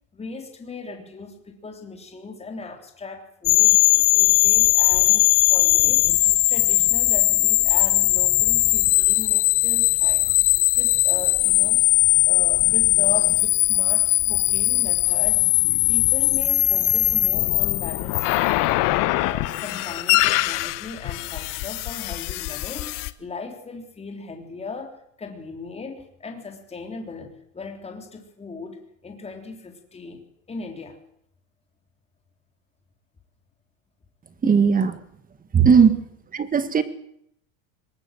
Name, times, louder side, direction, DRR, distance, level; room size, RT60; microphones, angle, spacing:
voice 1, 0.1-3.8 4.1-6.1 6.5-10.3 10.7-11.8 12.1-15.5 15.9-18.8 19.1-31.0 34.4-34.9 35.7-35.9, left 4 dB, 15° left, 4 dB, 3.5 m, -38 dB
sound 1, 3.5-23.1, left 22 dB, 50° left, 1.2 m, -20 dB
voice 2, 34.4-34.9 35.5-35.9 36.4-36.8, right 6 dB, 20° right, 13 dB, 1.7 m, -16 dB
22.0 x 19.5 x 7.6 m, 0.73 s
supercardioid pair, 125°, 40 cm